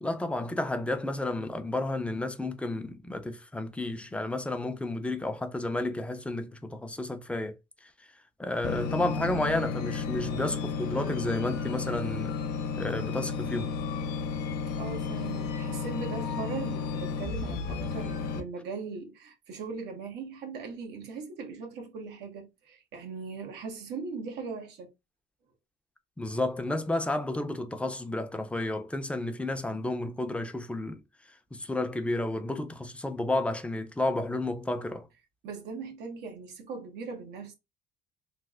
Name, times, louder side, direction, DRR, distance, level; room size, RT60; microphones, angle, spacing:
voice 1, 0.0-7.6 8.4-12.3 12.8-13.7 26.2-31.0 31.5-35.1, left 2 dB, 5° left, 0.6 m, -31 dB
sound 1, 8.6-18.4, left 5 dB, 85° left, 0.7 m, -33 dB
voice 2, 10.2-10.6 14.8-24.9 35.4-37.5, right 4 dB, 80° right, 1.2 m, -39 dB
3.2 x 2.0 x 3.6 m
cardioid pair, 110°, 17 cm